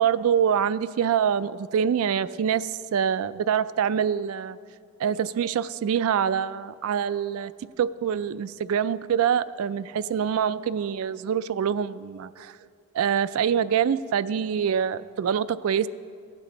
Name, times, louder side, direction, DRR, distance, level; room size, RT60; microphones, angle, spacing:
voice 1, 0.0-4.6 5.0-7.5 7.8-12.6 12.9-15.9, right 8 dB, 70° right, 15 dB, 0.3 m, -25 dB
15.5 x 8.3 x 3.8 m, 2.2 s
head